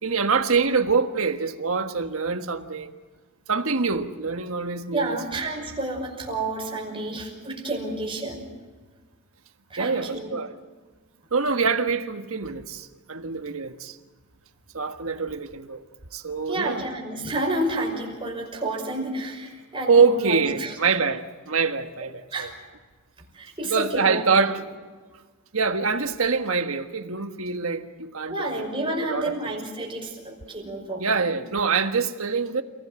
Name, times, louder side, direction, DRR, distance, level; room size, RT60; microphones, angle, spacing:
voice 1, 0.0-2.9 3.5-5.2 9.8-10.5 11.3-14.0 14.7-15.8 16.1-16.8 19.9-22.5 23.7-24.6 25.5-28.6 29.0-29.3 31.0-32.6, right 5 dB, 70° right, 1.5 m, -24 dB
voice 2, 4.9-8.5 9.7-10.4 16.5-20.8 22.3-22.5 23.3-24.4 28.3-31.3, right 2 dB, 25° right, 5.8 m, -30 dB
29.5 x 17.0 x 7.7 m
head